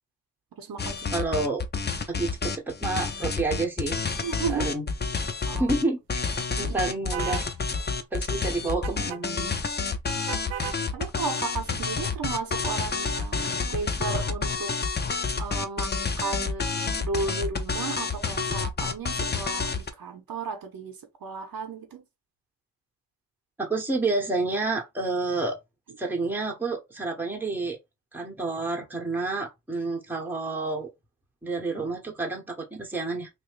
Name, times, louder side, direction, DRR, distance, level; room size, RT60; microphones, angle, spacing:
voice 1, 0.6-1.1 4.2-4.7 5.5-5.7 6.6-6.9 9.9-10.3 10.9-14.7 15.4-16.7 17.0-22.0, right 4 dB, 50° right, 1.1 m, -34 dB
sound 1, 0.8-5.8 6.1-19.9, left 4 dB, 25° left, 0.6 m, -29 dB
voice 2, 1.1-1.6 2.1-4.0 4.5-4.8 5.6-6.0 6.6-7.4 8.1-9.5 23.6-25.6 26.0-27.8 28.1-30.9 31.4-33.3, right 3 dB, 5° right, 1.1 m, -29 dB
sound 2, 7.1-7.5 8.8-9.2 10.3-10.8, right 10 dB, 75° right, 0.6 m, -34 dB
2.8 x 2.6 x 3.2 m
supercardioid pair, 55°, 45 cm